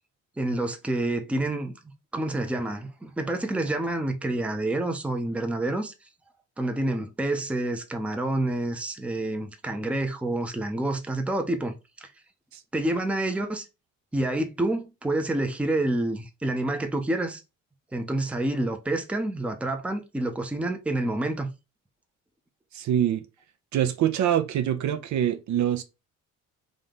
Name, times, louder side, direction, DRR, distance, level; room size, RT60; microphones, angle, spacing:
voice 1, 0.4-1.7 2.1-5.9 6.6-11.7 12.0-12.1 12.7-13.6 14.1-17.4 17.9-21.5, right 1 dB, 5° right, 0.5 m, -28 dB
voice 2, 22.7-23.2 23.7-25.8, right 10 dB, 65° right, 0.6 m, -24 dB
3.7 x 2.8 x 3.5 m
cardioid pair, 120°, 31 cm